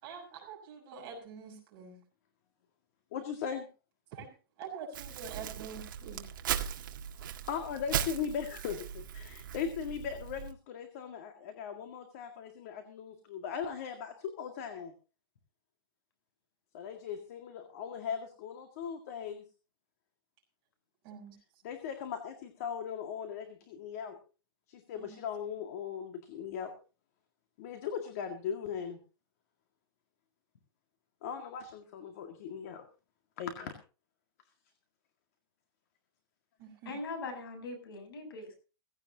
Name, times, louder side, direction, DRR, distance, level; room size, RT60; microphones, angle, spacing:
voice 1, 0.0-2.0 4.1-4.3 4.6-6.3 21.0-21.4 24.9-25.2 36.6-36.9, right 6 dB, 30° right, -1 dB, 6.2 m, -46 dB
voice 2, 3.1-3.7 7.2-14.9 16.7-19.4 21.6-24.2 24.7-26.7 27.6-29.0 31.2-32.8 33.4-33.7, left 7 dB, 40° left, 6 dB, 1.9 m, -39 dB
Crumpling crinkling, 4.9-10.5, right 9 dB, 55° right, 1.8 m, -38 dB
voice 3, 36.8-38.5, left 3 dB, 65° left, 6 dB, 7.9 m, -41 dB
17.5 x 16.0 x 2.8 m, 0.34 s
supercardioid pair, 180°, 13 cm